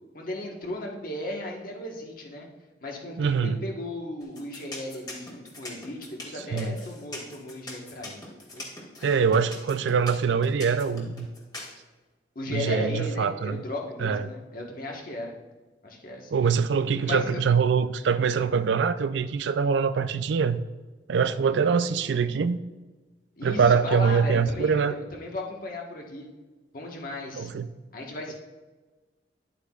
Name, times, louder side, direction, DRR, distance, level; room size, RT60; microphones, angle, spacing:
voice 1, 0.1-2.5 2.8-6.0 6.2-8.2 8.5-8.7 12.3-15.3 15.8-16.4 17.0-17.4 23.4-26.3 26.7-27.5 27.9-28.4, left 1 dB, 50° left, 0 dB, 1.3 m, -35 dB
voice 2, 3.2-3.6 6.5-6.8 9.0-11.3 12.5-13.6 14.0-14.3 16.3-20.6 21.1-22.6 23.4-24.9 27.4-27.7, right 6 dB, 75° right, 12 dB, 0.4 m, -24 dB
sound 1, 4.2-11.7, left 2 dB, 20° left, 1.6 m, -41 dB
10.0 x 8.1 x 2.4 m, 1.2 s
head